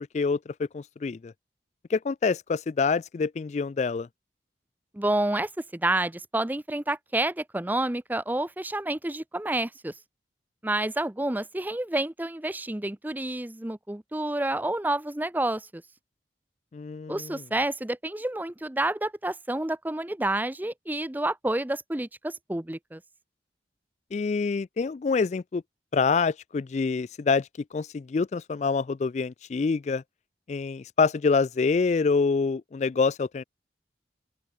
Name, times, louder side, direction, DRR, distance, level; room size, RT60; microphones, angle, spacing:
voice 1, 0.1-1.3 1.9-4.1 16.7-17.4 24.1-25.6 25.9-30.0 30.5-33.4, left 4 dB, 40° left, 0.3 m, -26 dB
voice 2, 4.9-9.9 10.6-15.8 17.1-23.0, right 1 dB, 10° right, 0.5 m, -29 dB
open air
head